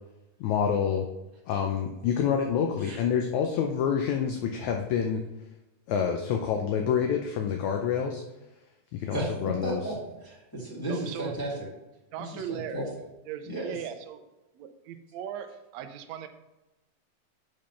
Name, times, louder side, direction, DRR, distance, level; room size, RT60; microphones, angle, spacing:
voice 1, 0.4-1.1 1.5-5.2 5.9-8.2 8.9-9.8, left 7 dB, 80° left, 3 dB, 1.7 m, -27 dB
voice 2, 9.6-11.7 12.2-12.8 13.4-13.7, right 1 dB, 10° left, -7 dB, 1.4 m, -34 dB
voice 3, 10.9-11.3 12.1-12.8 13.3-14.2 14.5-16.3, right 9 dB, 85° right, 7 dB, 1.5 m, -38 dB
6.3 x 6.3 x 5.7 m, 1.0 s
omnidirectional pair, 4.0 m